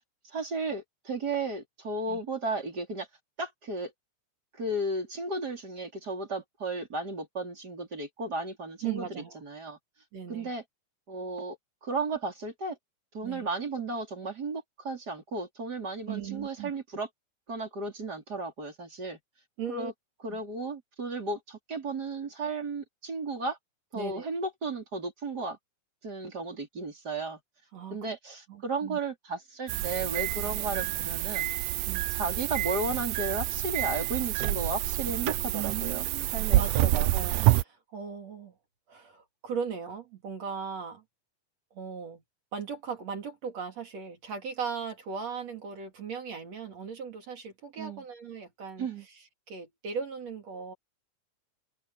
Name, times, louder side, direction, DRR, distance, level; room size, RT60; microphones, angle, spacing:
voice 1, 0.3-3.1 3.4-3.9 4.6-9.8 10.3-10.6 11.1-11.6 11.8-12.8 13.1-17.1 17.5-19.2 19.7-19.9 20.2-23.6 23.9-25.6 26.0-27.4 27.9-31.5 32.1-36.1 36.3-37.1 47.8-48.0 48.8-49.1, right 3 dB, 30° right, 4.6 m, -34 dB
voice 2, 8.8-9.4 10.1-10.5 13.2-13.5 16.1-16.7 19.6-19.9 20.3-20.4 23.9-24.3 27.7-28.1 28.5-29.0 31.9-32.0 35.5-38.5 38.9-41.0 41.7-42.2 42.5-50.7, right 6 dB, 60° right, 3.7 m, -38 dB
sound 1, 29.7-37.6, right 17 dB, 90° right, 2.2 m, -28 dB
omnidirectional pair, 3.5 m